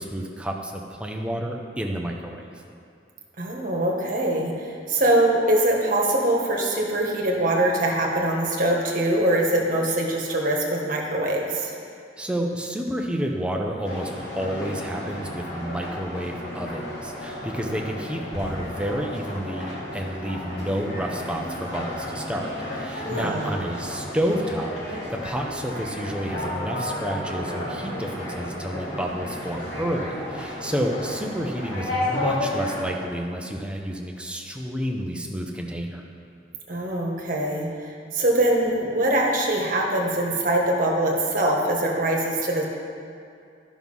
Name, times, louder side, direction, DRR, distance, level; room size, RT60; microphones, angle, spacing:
voice 1, 0.0-2.6 12.2-36.0, equal, 5° right, 0 dB, 0.8 m, -30 dB
voice 2, 3.4-11.7 23.0-23.6 36.7-42.6, right 1 dB, 45° right, -1 dB, 1.5 m, -23 dB
sound 1, 13.8-32.8, left 1 dB, 60° left, 2.8 m, -33 dB
11.5 x 6.1 x 5.4 m, 2.5 s
head